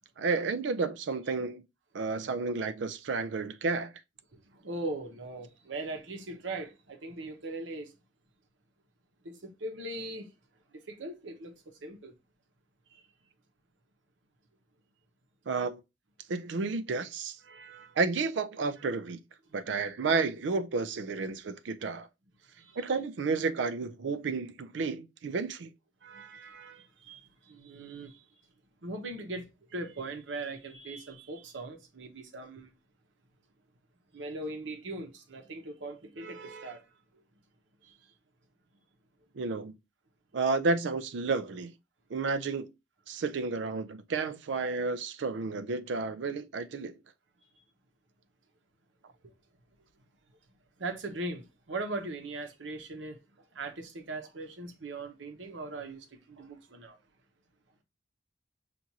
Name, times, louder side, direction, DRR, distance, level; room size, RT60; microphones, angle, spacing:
voice 1, 0.2-1.6 1.9-3.9 15.5-15.8 16.3-17.4 18.0-19.2 19.5-22.1 22.8-25.7 39.3-39.8 40.3-41.7 42.1-42.7 43.1-47.0, right 4 dB, 70° right, 0.4 m, -31 dB
voice 2, 4.3-7.9 9.2-10.3 10.7-12.1 12.9-13.1 17.4-18.0 18.8-18.9 21.2-21.4 22.5-22.8 26.0-28.4 28.8-32.7 34.1-37.2 37.8-38.1 39.2-39.3 47.5-47.6 49.2-49.3 49.9-50.1 50.8-57.0, right 2 dB, 90° right, 0.9 m, -40 dB
5.9 x 2.5 x 2.7 m
head